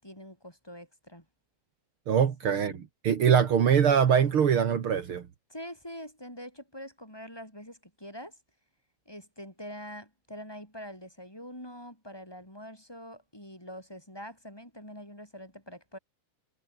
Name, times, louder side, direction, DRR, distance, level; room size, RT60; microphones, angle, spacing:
voice 1, 0.0-1.2 2.4-2.8 5.5-8.3 9.0-16.0, equal, 5° left, 6.4 m, -44 dB
voice 2, 2.1-5.3, right 7 dB, 80° right, 1.2 m, -23 dB
omnidirectional pair, 5.1 m